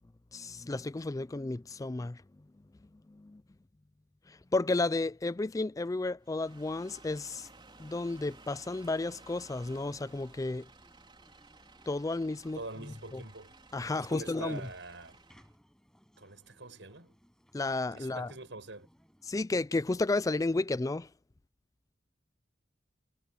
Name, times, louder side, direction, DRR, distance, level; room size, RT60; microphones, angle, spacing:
voice 1, 0.3-2.2 3.2-3.4 4.5-7.5 7.8-10.7 11.9-12.6 13.7-14.6 17.5-18.3 19.3-21.1, left 2 dB, 20° left, 0.4 m, -32 dB
sound 1, 6.2-15.5, right 3 dB, 25° right, 4.0 m, -57 dB
sound 2, 6.4-19.4, equal, 5° left, 6.0 m, -64 dB
voice 2, 12.5-13.6 13.9-15.2 16.2-17.1 17.9-18.9, right 2 dB, 80° right, 6.2 m, -45 dB
head